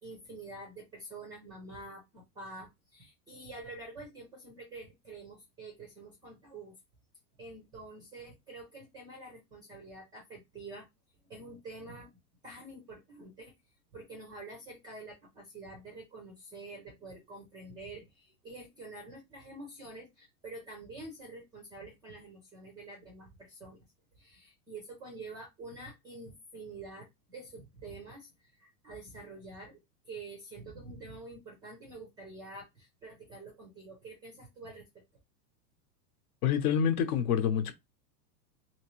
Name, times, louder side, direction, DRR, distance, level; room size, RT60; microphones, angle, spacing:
voice 1, 0.0-6.8 7.4-10.9 11.3-12.1 12.4-13.5 13.9-23.8 24.1-34.9, right 2 dB, 10° right, 0.3 m, -47 dB
voice 2, 36.4-37.7, left 8 dB, 65° left, 0.9 m, -27 dB
2.9 x 2.9 x 3.0 m
supercardioid pair, 145°, 49 cm